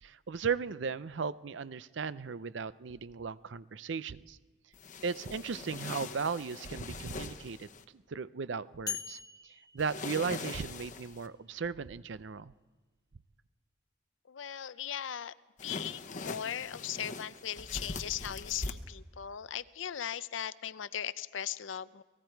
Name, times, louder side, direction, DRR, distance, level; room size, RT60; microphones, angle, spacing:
voice 1, 0.0-4.4 5.0-7.7 8.1-9.2 9.7-12.5, right 5 dB, 70° right, 16 dB, 0.5 m, -36 dB
sound 1, 4.7-7.8 9.8-11.3 15.6-18.7, left 3 dB, 40° left, 1.0 m, -42 dB
sound 2, 8.9-10.9, left 8 dB, 20° left, 1.2 m, -43 dB
voice 2, 14.3-15.3 15.6-22.0, left 10 dB, 80° left, 16 dB, 0.6 m, -38 dB
30.0 x 19.0 x 4.6 m, 1.2 s
head